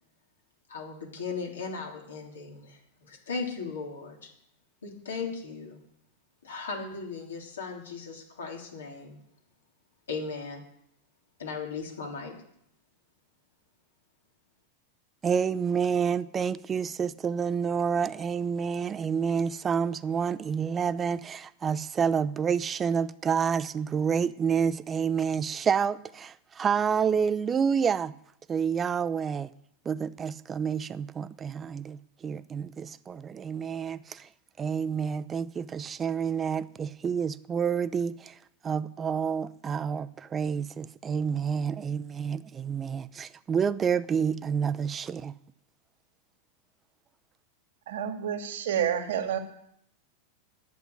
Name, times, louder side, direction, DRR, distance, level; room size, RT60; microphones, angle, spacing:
voice 1, 0.7-4.3 4.8-5.8 6.4-9.2 10.1-10.6 11.4-12.3, left 4 dB, 80° left, 3.4 m, -37 dB
voice 2, 15.2-28.1 28.5-29.5 29.8-34.3 34.6-38.4 38.6-45.3, right 7 dB, 25° right, 0.6 m, -29 dB
voice 3, 47.9-49.4, right 9 dB, 70° right, 1.9 m, -29 dB
11.0 x 7.7 x 9.6 m
hypercardioid pair, 100°, 0 cm